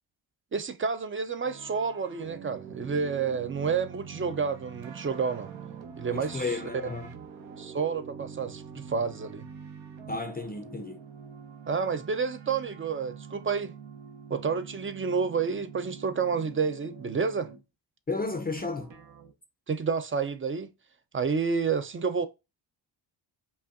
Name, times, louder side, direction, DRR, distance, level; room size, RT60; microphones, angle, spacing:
voice 1, 0.5-5.5 6.0-6.6 7.6-9.5 11.7-13.7 14.3-17.5 19.7-20.7 21.1-22.3, right 5 dB, 25° right, 0.5 m, -29 dB
sound 1, 1.4-17.6 18.6-19.3, right 7 dB, 70° right, 1.0 m, -45 dB
voice 2, 6.1-7.1 10.1-11.0 18.1-18.9, left 3 dB, 20° left, 0.6 m, -33 dB
5.4 x 2.2 x 2.4 m
supercardioid pair, 65°, 47 cm